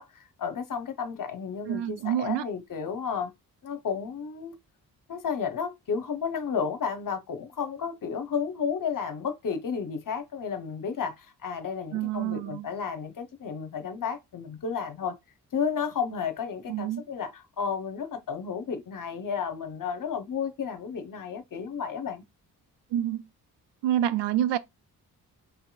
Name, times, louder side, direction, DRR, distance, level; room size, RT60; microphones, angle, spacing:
voice 1, 0.0-3.3 3.6-4.6 5.1-15.2 15.5-22.2, left 6 dB, 45° left, 0.9 m, -32 dB
voice 2, 1.7-2.5 11.9-12.7 16.7-17.0 22.9-23.2 23.8-24.6, right 11 dB, 65° right, 0.5 m, -27 dB
5.4 x 2.9 x 2.3 m
hypercardioid pair, 40°, 46 cm